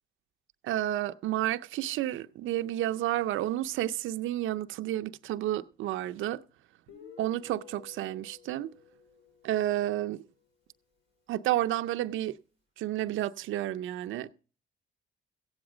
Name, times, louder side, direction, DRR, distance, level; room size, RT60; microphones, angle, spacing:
voice 1, 0.6-6.4 7.2-8.7 9.4-10.2 11.3-12.4 12.8-14.3, right 14 dB, 80° right, 0.5 m, -31 dB
Guitar, 6.9-10.4, left 7 dB, 65° left, 4.2 m, -53 dB
15.5 x 8.8 x 4.9 m
cardioid pair, 90°, 20 cm